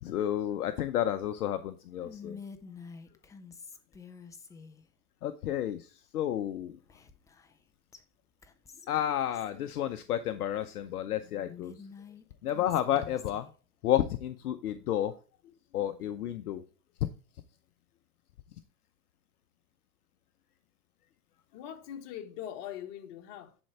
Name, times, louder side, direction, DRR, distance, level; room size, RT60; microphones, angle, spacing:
voice 1, 0.0-2.4 5.2-6.8 8.9-11.8 12.4-13.5 13.8-15.1 15.7-16.6, left 11 dB, 75° left, 0.8 m, -31 dB
Whispering, 2.0-4.9 6.9-7.6 7.9-8.0 8.4-9.6 11.4-13.5, left 5 dB, 10° left, 0.4 m, -48 dB
voice 2, 21.5-23.6, left 10 dB, 50° left, 1.6 m, -42 dB
10.5 x 4.5 x 4.3 m
hypercardioid pair, 110°, 45 cm